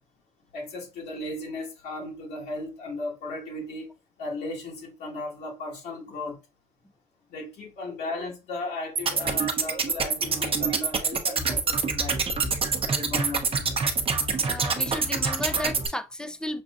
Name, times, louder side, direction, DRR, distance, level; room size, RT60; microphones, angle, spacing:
voice 1, 0.5-3.9 4.2-6.4 7.3-12.2 12.9-13.8, left 2 dB, 70° left, 1.8 m, -36 dB
sound 1, 9.0-15.9, right 5 dB, 35° right, 0.8 m, -26 dB
voice 2, 14.4-16.6, left 1 dB, 5° left, 0.5 m, -33 dB
6.3 x 2.6 x 2.5 m
cardioid pair, 110°, 17 cm